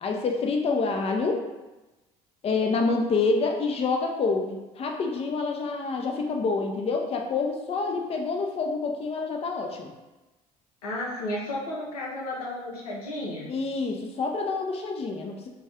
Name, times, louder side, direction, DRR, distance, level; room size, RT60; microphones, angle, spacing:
voice 1, 0.0-1.4 2.4-9.9 13.5-15.5, left 4 dB, 30° left, 2 dB, 0.5 m, -27 dB
voice 2, 10.8-13.5, left 1 dB, 90° left, -3 dB, 0.6 m, -33 dB
2.5 x 2.2 x 3.4 m, 1.1 s
hypercardioid pair, 60°, 19 cm